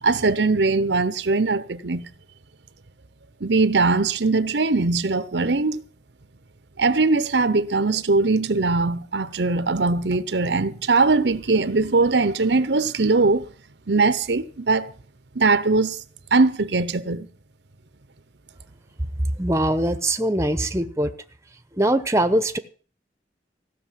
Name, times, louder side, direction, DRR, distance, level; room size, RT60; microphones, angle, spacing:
voice 1, 0.0-2.1 3.4-5.8 6.8-13.5 13.9-14.9 15.3-16.0 16.3-17.3, right 3 dB, 75° right, 0.9 m, -21 dB
voice 2, 19.4-21.1 21.8-22.6, right 1 dB, 15° right, 0.9 m, -22 dB
16.0 x 6.6 x 9.2 m
head